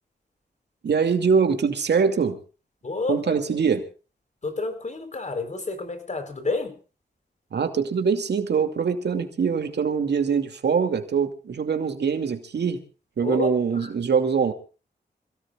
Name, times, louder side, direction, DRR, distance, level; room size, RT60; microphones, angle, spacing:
voice 1, 0.8-2.4 3.1-3.8 7.5-12.8 13.2-14.5, right 6 dB, 80° right, 7 dB, 2.6 m, -23 dB
voice 2, 2.8-3.4 4.4-6.8 13.2-13.5, left 3 dB, 45° left, 8 dB, 4.1 m, -29 dB
28.0 x 17.5 x 2.4 m, 0.36 s
wide cardioid pair, 110°, 17 cm